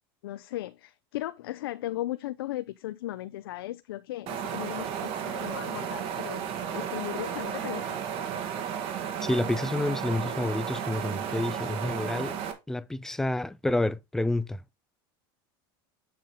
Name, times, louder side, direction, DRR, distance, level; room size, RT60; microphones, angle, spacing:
voice 1, 0.2-6.5 6.7-8.0, left 15 dB, 90° left, 0.5 m, -36 dB
sound 1, 4.3-12.5, right 8 dB, 50° right, 1.8 m, -33 dB
voice 2, 9.2-12.3 12.7-14.8, left 2 dB, 5° left, 0.4 m, -29 dB
7.7 x 5.6 x 3.6 m
supercardioid pair, 120°, 12 cm